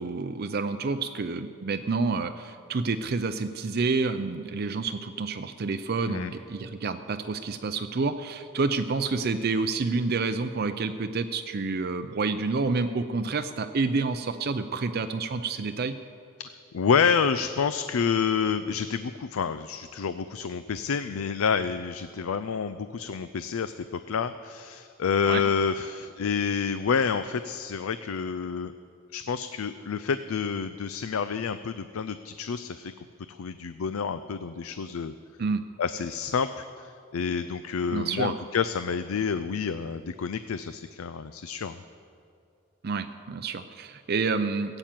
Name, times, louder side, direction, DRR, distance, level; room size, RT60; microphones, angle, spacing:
voice 1, 0.0-16.0 25.3-25.4 35.4-35.6 37.9-38.3 42.8-44.8, right 4 dB, 45° right, 8 dB, 0.5 m, -29 dB
voice 2, 16.7-28.7 29.1-32.9 33.3-35.1 35.8-41.8, left 6 dB, 80° left, 12 dB, 0.4 m, -28 dB
16.5 x 8.9 x 7.5 m, 2.5 s
head